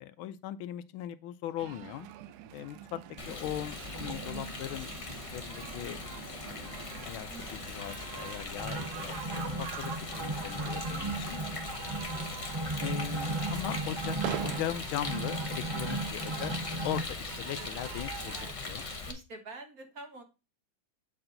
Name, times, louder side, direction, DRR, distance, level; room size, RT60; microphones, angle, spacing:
voice 1, 0.0-2.1 2.5-3.0 3.3-6.0 6.5-6.8 7.0-11.4 12.8-14.2 14.4-16.5 16.8-18.8, left 12 dB, 80° left, 1.4 m, -39 dB
sound 1, 1.6-18.5, right 12 dB, 90° right, 0.8 m, -46 dB
Rain, 3.2-19.1, left 3 dB, 40° left, 0.5 m, -40 dB
sound 2, 3.9-4.8 5.3-5.4 5.5-6.2 6.4-17.0, right 2 dB, 15° right, 1.1 m, -36 dB
voice 2, 7.3-7.7 12.1-12.5 16.1-16.5 19.1-20.2, right 3 dB, 50° right, 1.5 m, -48 dB
7.7 x 4.4 x 3.8 m
omnidirectional pair, 2.3 m